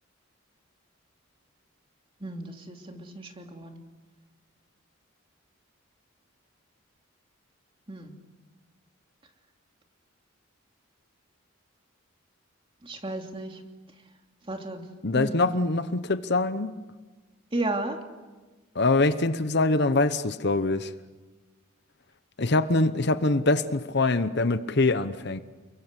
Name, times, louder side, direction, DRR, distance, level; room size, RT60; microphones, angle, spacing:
voice 1, 2.2-3.8 7.9-8.2 12.8-13.6 14.5-14.9 15.1-15.4 17.5-18.0, right 2 dB, 25° right, 3 dB, 2.8 m, -33 dB
voice 2, 15.0-16.8 18.7-20.9 22.4-25.4, left 2 dB, 55° left, 12 dB, 1.0 m, -24 dB
30.0 x 22.5 x 8.2 m, 1.3 s
head